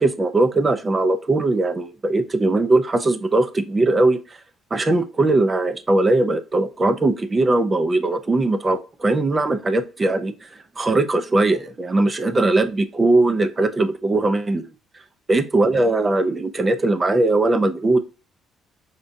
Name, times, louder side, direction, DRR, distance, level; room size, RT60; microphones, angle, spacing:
voice 1, 0.0-4.2 4.7-10.3 10.8-14.6 15.3-18.0, right 2 dB, 20° right, 9 dB, 0.4 m, -20 dB
5.0 x 2.2 x 2.5 m, 0.33 s
cardioid pair, 155°, 0 cm